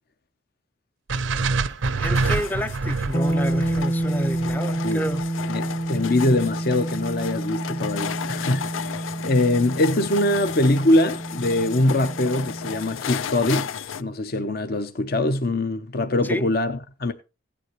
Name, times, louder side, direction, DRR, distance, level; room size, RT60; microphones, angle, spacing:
sound 1, 1.1-14.0, left 8 dB, 85° left, 0.5 m, -34 dB
sound 2, 1.1-5.3, right 4 dB, 80° right, 0.6 m, -26 dB
voice 1, 2.0-5.3 16.2-16.5, equal, 10° left, 0.5 m, -29 dB
sound 3, 3.1-12.9, right 1 dB, 30° left, 1.0 m, -29 dB
voice 2, 5.5-13.7 14.0-17.1, left 1 dB, 55° left, 0.7 m, -23 dB
16.0 x 9.2 x 3.1 m
head